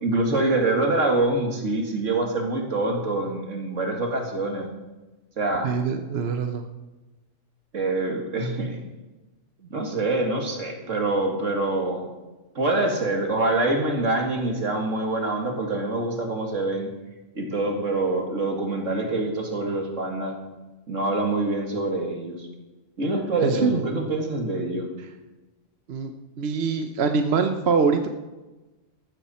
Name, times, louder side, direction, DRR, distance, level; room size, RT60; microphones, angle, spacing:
voice 1, 0.0-4.7 5.4-5.7 7.7-8.8 9.6-12.0 12.6-16.9 17.4-20.3 20.9-22.5 23.0-24.9, right 2 dB, 80° right, 2 dB, 2.4 m, -25 dB
voice 2, 5.6-6.7 23.4-23.8 25.0-25.1 25.9-26.1 26.4-28.1, right 5 dB, 60° right, 6 dB, 1.0 m, -24 dB
15.0 x 13.0 x 4.3 m, 1.1 s
omnidirectional pair, 1.3 m